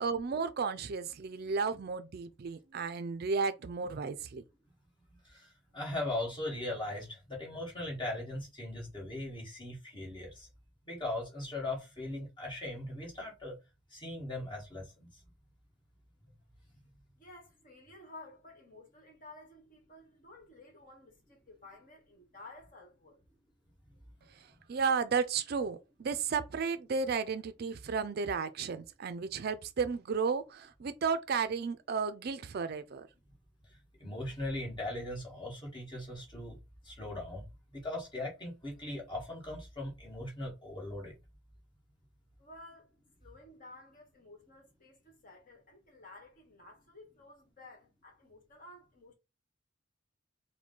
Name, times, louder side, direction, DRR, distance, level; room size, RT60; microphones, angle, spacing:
voice 1, 0.0-4.4 24.7-33.1, right 5 dB, 50° right, 0.4 m, -33 dB
voice 2, 5.1-10.5 10.9-13.5 13.9-15.1 34.0-36.6 36.8-37.4 37.7-41.1, left 1 dB, 25° left, 1.6 m, -39 dB
voice 3, 17.1-23.2 42.4-42.9 43.2-49.1, left 2 dB, 40° left, 1.4 m, -54 dB
4.8 x 2.2 x 3.7 m
head